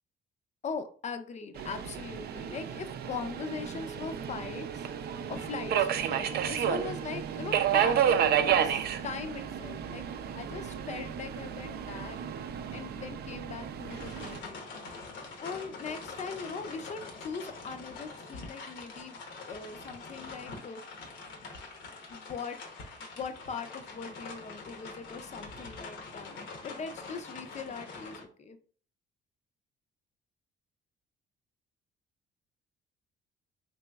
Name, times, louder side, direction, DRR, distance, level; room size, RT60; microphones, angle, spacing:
voice 1, 0.6-4.8 5.3-10.0 10.3-12.2 12.7-14.6 15.4-19.2 19.4-20.8 22.1-22.6 23.0-28.6, left 5 dB, 35° left, 9 dB, 0.5 m, -40 dB
Subway metro underground, 1.6-14.4, right 9 dB, 55° right, 0.4 m, -31 dB
sound 1, 13.9-28.2, left 3 dB, 75° left, 0.9 m, -44 dB
4.0 x 2.9 x 2.3 m, 0.42 s
cardioid pair, 105°, 20 cm